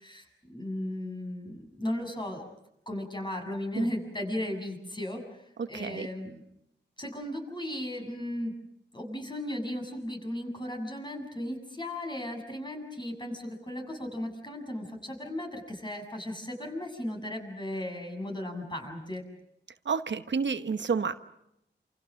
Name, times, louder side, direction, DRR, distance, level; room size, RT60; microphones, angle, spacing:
voice 1, 0.0-2.4 2.9-6.4 7.0-8.5 8.9-19.2, left 1 dB, 25° left, 2 dB, 7.4 m, -36 dB
voice 2, 5.6-6.1 19.8-21.2, right 5 dB, 75° right, 10 dB, 1.1 m, -30 dB
28.0 x 27.5 x 6.5 m, 0.81 s
wide cardioid pair, 70°, 19 cm